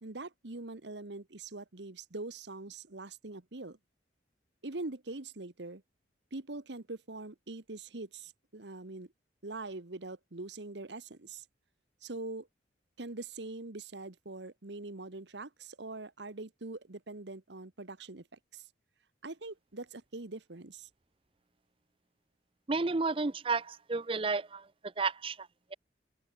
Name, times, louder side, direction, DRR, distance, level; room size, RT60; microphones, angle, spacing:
voice 1, 0.0-3.8 4.6-5.8 6.3-9.1 9.4-11.4 12.0-12.5 13.0-18.2 18.5-18.6 19.2-20.9, right 2 dB, 65° right, 1.3 m, -43 dB
voice 2, 22.7-24.7 25.0-25.7, right 4 dB, 30° right, 0.5 m, -32 dB
open air
head